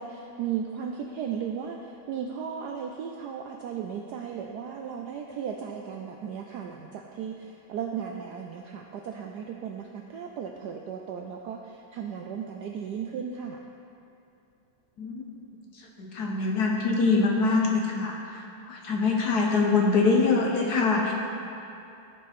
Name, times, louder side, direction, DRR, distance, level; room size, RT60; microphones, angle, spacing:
voice 1, 0.0-13.6, right 7 dB, 80° right, 2 dB, 0.9 m, -36 dB
voice 2, 15.7-21.1, left 4 dB, 60° left, 0 dB, 1.2 m, -24 dB
15.0 x 5.4 x 4.3 m, 2.7 s
omnidirectional pair, 2.3 m